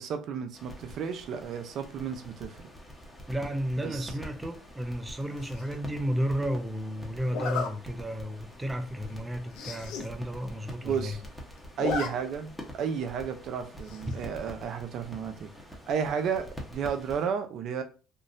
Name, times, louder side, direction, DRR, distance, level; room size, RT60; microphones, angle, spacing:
voice 1, 0.0-2.7 3.8-4.1 10.8-11.2 11.8-15.5 15.9-17.8, right 7 dB, 60° right, 0.6 m, -32 dB
sound 1, 0.5-17.3, equal, 5° left, 1.1 m, -46 dB
voice 2, 3.3-11.2, equal, 15° right, 0.6 m, -32 dB
Zipper (clothing), 5.4-5.8 7.3-7.7 8.3-8.4 8.8-8.9 9.1-9.2 9.5-10.1 10.4-10.5 10.7-11.3 11.6-12.1 12.4-12.5 13.8-14.2, left 5 dB, 75° left, 0.6 m, -34 dB
3.7 x 2.4 x 2.6 m
supercardioid pair, 80°, 0 cm